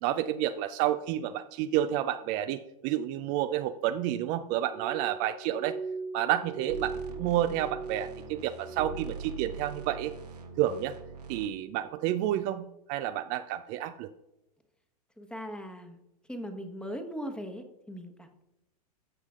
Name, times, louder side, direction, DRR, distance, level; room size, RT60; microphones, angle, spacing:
voice 1, 0.0-5.8 6.1-10.1 10.6-10.9 11.3-14.1, right 12 dB, 45° right, 10 dB, 0.4 m, -30 dB
Glass, 4.7-9.2 9.5-10.2 10.6-11.1 11.7-12.0, right 4 dB, 25° right, 1.3 m, -41 dB
sound 1, 6.7-11.5, right 7 dB, 85° right, 1.4 m, -43 dB
voice 2, 15.2-16.0 16.3-18.4, equal, 5° left, 6 dB, 1.1 m, -39 dB
13.5 x 7.2 x 2.5 m, 0.88 s
hypercardioid pair, 95°, 20 cm